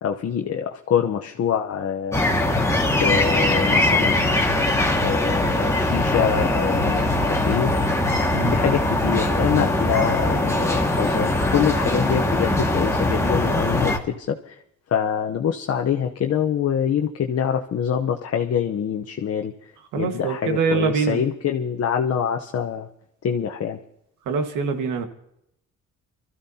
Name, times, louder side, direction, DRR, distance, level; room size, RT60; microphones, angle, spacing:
voice 1, 0.0-2.2 3.0-4.5 5.0-7.7 8.5-14.6 14.9-19.5 20.0-22.9 23.2-23.8, left 8 dB, 55° left, 3 dB, 0.9 m, -25 dB
sound 1, 2.1-14.0, left 1 dB, 10° left, 1.9 m, -21 dB
voice 2, 19.9-21.2 24.2-25.1, right 5 dB, 90° right, 6 dB, 1.7 m, -24 dB
25.5 x 14.0 x 2.8 m, 0.78 s
cardioid pair, 90°, 30 cm